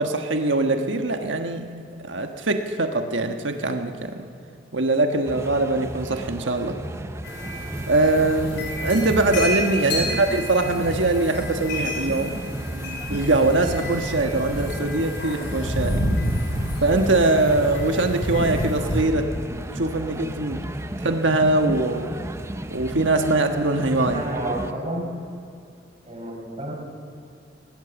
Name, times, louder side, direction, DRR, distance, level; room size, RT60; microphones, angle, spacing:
voice 1, 0.0-1.7 2.0-4.2 4.7-6.8 7.9-12.4 12.7-16.1 16.8-19.3 19.7-20.6 21.0-22.1 22.7-24.3, right 2 dB, 80° right, 5 dB, 1.4 m, -22 dB
sound 1, 5.2-24.7, right 1 dB, 15° right, 0.7 m, -34 dB
sound 2, 7.2-19.0, equal, 65° left, 5.5 m, -29 dB
voice 2, 9.8-10.2 24.1-25.2 26.0-26.7, right 1 dB, 35° right, -1 dB, 4.9 m, -31 dB
20.0 x 18.5 x 7.1 m, 2.5 s
head